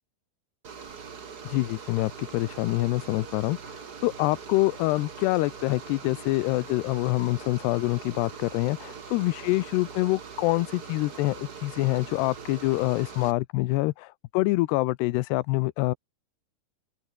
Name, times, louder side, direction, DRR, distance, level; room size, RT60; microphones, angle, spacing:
sound 1, 0.6-13.3, right 6 dB, 45° right, 1.3 m, -42 dB
voice 1, 1.4-15.9, left 20 dB, 90° left, 2.8 m, -26 dB
open air
omnidirectional pair, 4.7 m